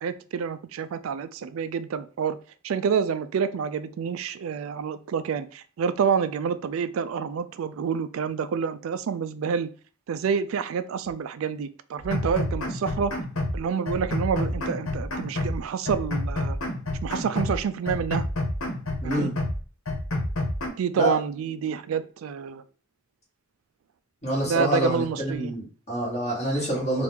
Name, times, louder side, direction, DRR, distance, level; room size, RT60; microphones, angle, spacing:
voice 1, 0.0-2.4 2.6-9.7 10.1-13.1 13.5-16.6 17.0-18.3 19.0-19.3 20.8-22.6 24.4-25.6, right 6 dB, 85° right, 13 dB, 0.3 m, -28 dB
sound 1, 12.0-13.6 13.9-15.6 15.9-17.6 17.9-19.6 19.9-20.7, left 1 dB, 85° left, 1.2 m, -29 dB
voice 2, 19.0-19.3 20.9-21.2 24.2-27.0, right 1 dB, 35° left, -5 dB, 2.3 m, -27 dB
4.4 x 2.5 x 3.5 m, 0.38 s
head